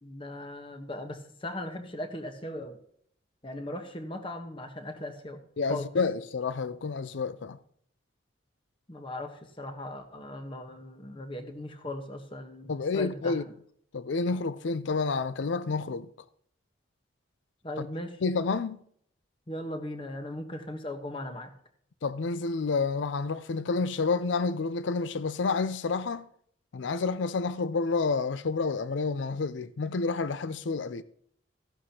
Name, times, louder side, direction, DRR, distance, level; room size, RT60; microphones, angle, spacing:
voice 1, 0.0-2.8 3.4-5.4 5.7-5.9 8.9-13.4 17.6-18.2 19.5-21.5, left 1 dB, 25° left, 1.1 m, -38 dB
voice 2, 5.6-7.6 12.7-13.4 13.9-16.1 17.8-17.9 18.2-18.8 22.0-26.3 26.7-31.0, left 4 dB, 70° left, 0.5 m, -29 dB
14.5 x 11.0 x 2.9 m
head